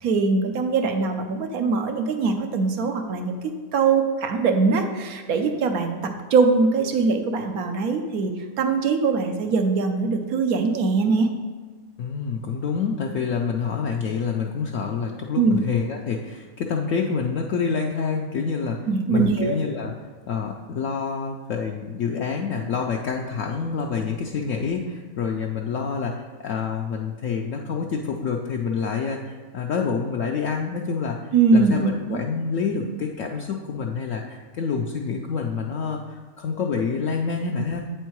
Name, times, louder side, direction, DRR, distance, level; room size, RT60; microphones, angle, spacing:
voice 1, 0.0-3.4 3.7-8.3 8.6-11.3 15.4-15.6 18.9-19.6 31.3-32.2, right 4 dB, 80° right, 5 dB, 1.2 m, -22 dB
voice 2, 12.0-19.9 20.3-37.8, left 5 dB, 70° left, 1 dB, 0.9 m, -27 dB
8.0 x 4.5 x 4.5 m, 1.4 s
omnidirectional pair, 1.5 m